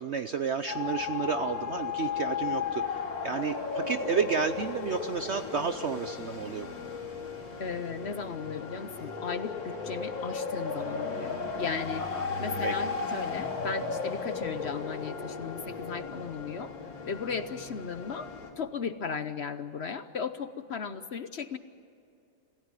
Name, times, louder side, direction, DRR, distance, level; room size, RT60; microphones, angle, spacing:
voice 1, 0.0-6.7 12.0-12.3 12.6-12.7, right 6 dB, 65° right, 9 dB, 0.6 m, -31 dB
sound 1, 0.7-18.5, left 5 dB, 85° left, 3.5 m, -35 dB
voice 2, 7.6-12.1 12.4-16.7 17.1-21.6, left 6 dB, 55° left, 11 dB, 0.8 m, -36 dB
27.0 x 16.0 x 9.1 m, 2.6 s
omnidirectional pair, 2.0 m